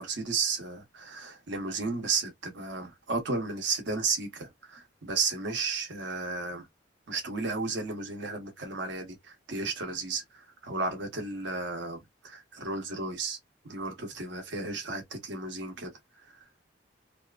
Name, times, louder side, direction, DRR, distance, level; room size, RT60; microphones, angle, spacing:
voice 1, 0.0-6.7 7.1-13.4 13.6-15.9 16.2-16.5, right 4 dB, 70° right, 0.9 m, -33 dB
2.7 x 2.4 x 2.3 m
head